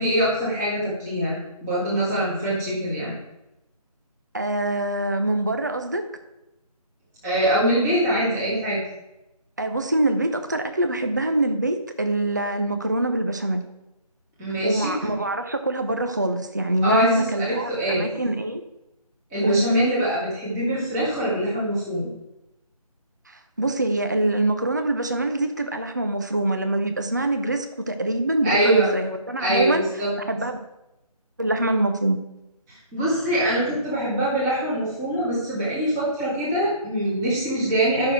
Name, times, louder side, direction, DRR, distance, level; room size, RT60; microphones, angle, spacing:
voice 1, 0.0-3.1 7.2-8.8 14.4-14.9 16.8-18.1 19.3-22.1 28.4-28.9 29.4-30.1 32.7-38.1, right 1 dB, 5° right, -8 dB, 1.5 m, -23 dB
voice 2, 4.3-6.1 9.6-13.6 14.6-18.6 19.4-19.7 23.3-29.9 30.3-30.6 31.4-32.2, right 1 dB, 30° right, 7 dB, 0.6 m, -24 dB
11.5 x 6.2 x 4.5 m, 0.94 s
figure-of-eight pair, 165°, 20 cm